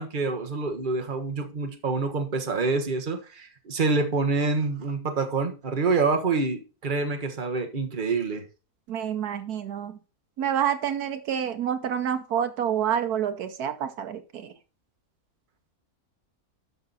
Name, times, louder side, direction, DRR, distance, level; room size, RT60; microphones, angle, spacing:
voice 1, 0.0-8.4, right 4 dB, 35° right, 1.4 m, -27 dB
voice 2, 8.9-10.0 10.4-14.5, right 9 dB, 75° right, 1.4 m, -28 dB
12.5 x 5.9 x 4.1 m
omnidirectional pair, 1.6 m